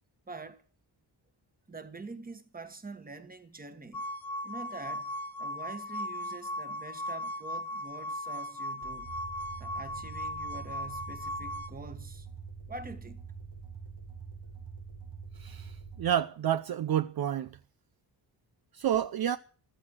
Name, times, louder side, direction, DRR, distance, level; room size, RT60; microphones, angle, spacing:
voice 1, 0.3-0.6 1.7-4.0 4.4-5.1 5.4-9.1 9.6-12.3 12.7-13.2, right 3 dB, 20° right, 1.5 m, -45 dB
sound 1, 3.9-11.7, left 1 dB, 55° left, 1.1 m, -37 dB
sound 2, 8.8-16.1, right 5 dB, 85° right, 5.0 m, -45 dB
voice 2, 15.4-15.7 16.0-17.5 18.7-19.4, right 10 dB, 55° right, 0.7 m, -29 dB
15.0 x 13.5 x 6.2 m
wide cardioid pair, 150°, 43 cm